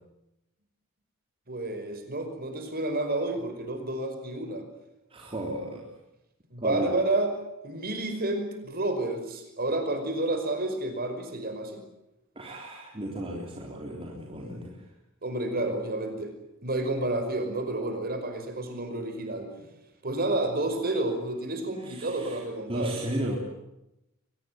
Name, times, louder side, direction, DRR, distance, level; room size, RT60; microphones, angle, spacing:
voice 1, 1.5-4.6 6.5-7.3 7.6-11.8 15.2-16.3 16.6-19.5 20.0-23.0, right 2 dB, 45° right, 6 dB, 5.4 m, -30 dB
voice 2, 5.1-5.9 6.6-6.9 12.4-14.9 21.8-22.4 22.7-23.4, right 1 dB, 25° right, -1 dB, 3.5 m, -34 dB
23.0 x 21.0 x 9.4 m, 0.90 s
head